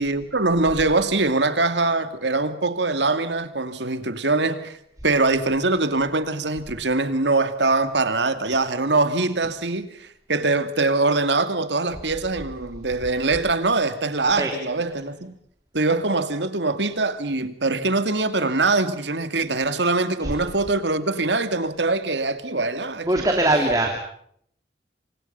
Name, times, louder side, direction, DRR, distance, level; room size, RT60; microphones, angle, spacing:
voice 1, 0.0-4.8 5.0-15.4 15.7-23.4, right 3 dB, 90° right, 2.4 m, -23 dB
voice 2, 23.0-24.1, right 1 dB, 20° right, 2.9 m, -21 dB
28.5 x 25.5 x 5.7 m
head